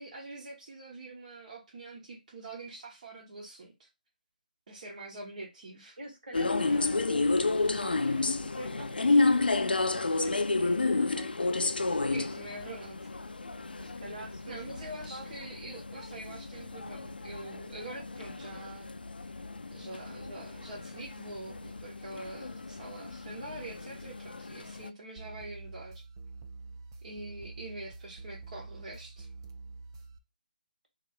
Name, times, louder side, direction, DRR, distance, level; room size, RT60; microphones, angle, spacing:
voice 1, 0.0-3.9 4.7-6.0 12.1-13.2 14.4-18.9 19.3-19.4 19.7-26.0 27.0-29.3, right 2 dB, 55° right, 1.3 m, -45 dB
voice 2, 6.0-10.8 11.2-11.3 13.8-15.3, right 1 dB, 75° right, 2.0 m, -47 dB
sound 1, 6.3-24.9, left 3 dB, 90° left, 0.4 m, -31 dB
sound 2, 25.2-30.2, right 3 dB, 25° right, 0.4 m, -46 dB
3.0 x 2.9 x 3.8 m
figure-of-eight pair, 155°, 5 cm